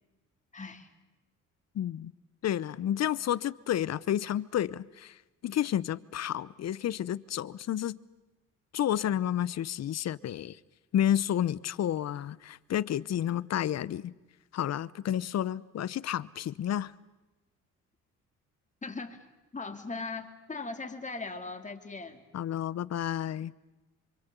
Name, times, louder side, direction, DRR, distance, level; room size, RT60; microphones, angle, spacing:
voice 1, 0.5-0.9 18.8-22.2, left 3 dB, 25° left, 2.8 m, -39 dB
voice 2, 1.7-2.1 2.4-8.0 8.7-10.6 10.9-14.1 14.5-16.9 22.3-23.5, left 11 dB, 60° left, 0.8 m, -31 dB
27.0 x 24.5 x 8.3 m
cardioid pair, 90°, 30 cm